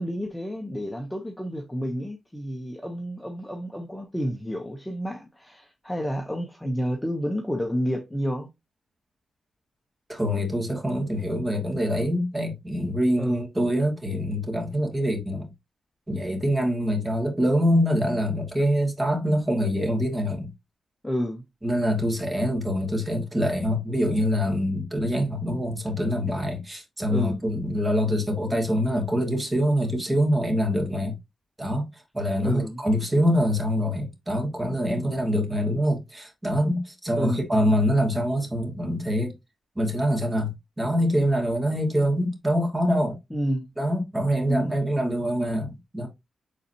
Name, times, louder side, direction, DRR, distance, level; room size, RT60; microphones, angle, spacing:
voice 1, 0.0-8.5 13.2-13.4 21.0-21.4 27.1-27.4 32.4-32.8 37.2-37.4 43.3-43.7 44.5-44.8, equal, 5° left, 1.0 m, -30 dB
voice 2, 10.1-15.5 16.1-20.5 21.6-31.1 31.6-39.3 39.8-40.5 40.8-43.1 43.8-46.1, equal, 15° right, 2.4 m, -25 dB
8.4 x 3.9 x 2.9 m
wide cardioid pair, 120°, 0 cm